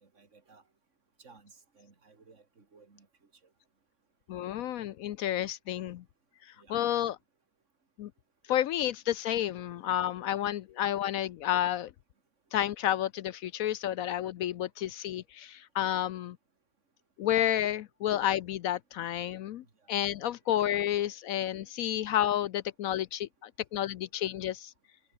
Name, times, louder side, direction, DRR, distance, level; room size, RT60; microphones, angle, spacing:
voice 1, 0.0-0.6 1.2-3.1 6.6-6.7, right 4 dB, 40° right, 3.0 m, -58 dB
voice 2, 4.3-6.0 6.7-7.2 8.0-8.1 8.5-11.9 12.5-16.4 17.2-24.7, left 11 dB, 70° left, 0.8 m, -30 dB
omnidirectional pair, 1.9 m